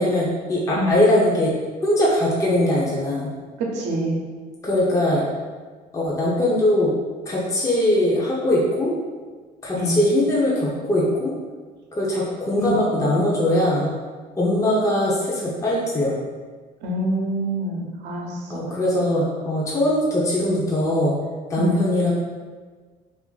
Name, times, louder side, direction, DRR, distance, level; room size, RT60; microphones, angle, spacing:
voice 1, 0.0-1.5 1.8-3.3 4.6-5.3 5.9-6.9 7.3-8.9 9.6-11.4 11.9-13.9 14.4-16.2 18.5-21.2 21.5-22.1, left 1 dB, 20° left, -5 dB, 0.6 m, -21 dB
voice 2, 3.6-4.2 9.7-10.0 12.6-12.7 13.0-13.2 16.8-18.6 21.6-21.8, right 1 dB, 90° right, -1 dB, 0.6 m, -26 dB
2.6 x 2.5 x 3.8 m, 1.4 s
cardioid pair, 110°, 17 cm